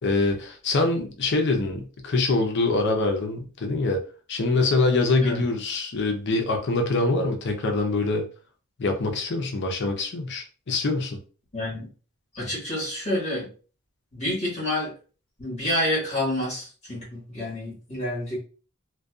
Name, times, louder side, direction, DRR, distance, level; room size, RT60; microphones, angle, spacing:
voice 1, 0.0-4.0 4.3-8.2 8.8-11.2, left 3 dB, 55° left, 4 dB, 0.5 m, -24 dB
voice 2, 11.5-11.9 12.3-13.5 14.1-14.9 15.4-18.4, left 1 dB, 35° left, -5 dB, 1.5 m, -28 dB
2.6 x 2.2 x 2.3 m, 0.37 s
head